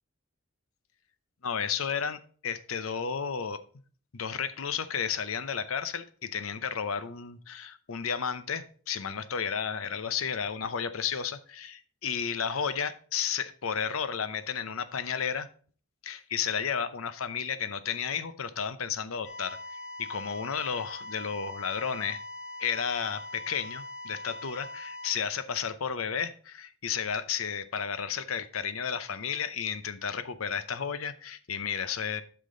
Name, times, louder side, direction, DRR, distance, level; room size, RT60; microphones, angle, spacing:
voice 1, 1.4-3.6 4.1-15.5 16.0-22.2 22.6-32.2, left 7 dB, 85° left, 0.7 m, -32 dB
sound 1, 19.2-25.1, left 1 dB, 55° left, 1.6 m, -42 dB
8.4 x 5.9 x 3.8 m
head